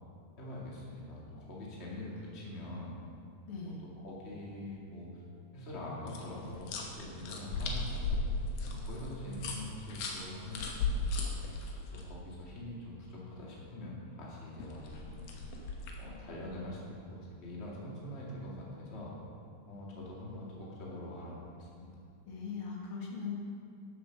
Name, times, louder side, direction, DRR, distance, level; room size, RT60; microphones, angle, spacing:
voice 1, 0.4-3.0 4.0-5.2 5.5-6.7 7.0-8.3 8.7-11.4 11.9-15.3 16.0-19.1 19.7-21.9, left 1 dB, 25° left, -4 dB, 1.9 m, -44 dB
voice 2, 3.5-3.8 22.3-23.4, left 5 dB, 50° left, -2 dB, 2.0 m, -40 dB
sound 1, 6.1-12.0 14.6-16.1, left 3 dB, 80° left, 2.7 m, -37 dB
10.5 x 7.9 x 6.5 m, 2.4 s
omnidirectional pair, 3.7 m